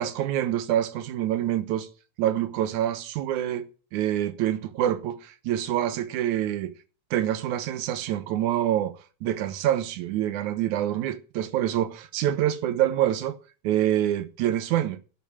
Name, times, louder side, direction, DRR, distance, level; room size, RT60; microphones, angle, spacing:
voice 1, 0.0-1.9 2.2-3.7 3.9-6.7 7.1-8.9 9.2-13.4 13.6-15.0, right 11 dB, 75° right, 2.5 m, -26 dB
12.5 x 6.6 x 9.0 m
omnidirectional pair, 3.5 m